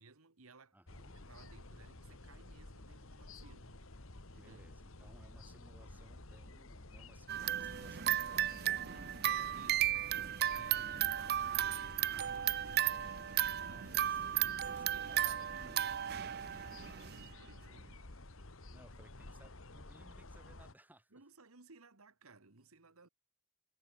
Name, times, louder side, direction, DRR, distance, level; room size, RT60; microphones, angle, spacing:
voice 1, 0.0-0.8 1.1-3.8 4.3-4.6 9.2-15.9 17.4-18.0 21.1-23.1, right 3 dB, 85° right, 1.8 m, -60 dB
voice 2, 0.7-1.1 4.3-8.9 13.3-14.2 14.6-16.4 18.7-21.1, right 1 dB, 10° right, 4.1 m, -63 dB
sound 1, 0.9-20.7, left 2 dB, 70° left, 2.1 m, -53 dB
sound 2, 7.3-17.3, right 12 dB, 45° right, 0.4 m, -35 dB
head